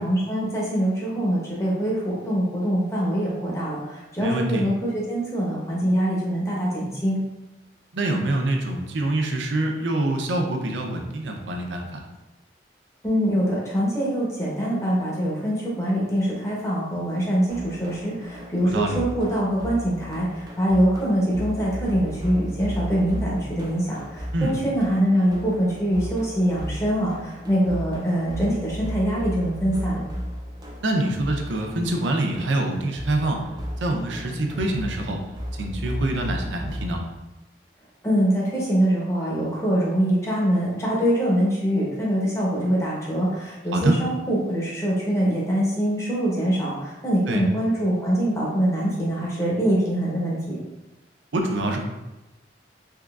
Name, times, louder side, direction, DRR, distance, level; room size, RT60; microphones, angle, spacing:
voice 1, 0.0-7.2 13.0-30.0 38.0-50.6, equal, 15° left, -5 dB, 0.8 m, -24 dB
voice 2, 4.2-4.6 7.9-12.0 18.7-19.0 24.3-24.6 30.8-33.4 33.8-35.2 35.6-37.0 43.7-43.9 47.3-47.4 51.3-51.8, right 1 dB, 80° right, 2 dB, 0.5 m, -25 dB
sound 1, 17.5-37.0, equal, 20° right, 0.4 m, -35 dB
3.6 x 3.0 x 2.4 m, 1.0 s
head